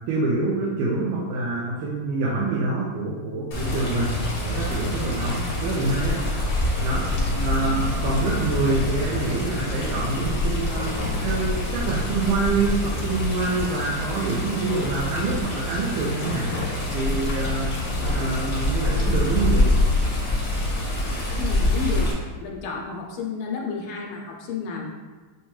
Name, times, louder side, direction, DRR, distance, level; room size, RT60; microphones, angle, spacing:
voice 1, 0.1-6.2 6.8-10.9 11.2-16.5 16.9-19.7, right 3 dB, 85° right, -5 dB, 1.5 m, -26 dB
Water, 3.5-22.1, left 1 dB, 60° left, 0.7 m, -25 dB
voice 2, 21.4-22.1 22.4-24.9, left 5 dB, 90° left, 0 dB, 1.5 m, -31 dB
5.6 x 2.2 x 3.1 m, 1.4 s
omnidirectional pair, 2.3 m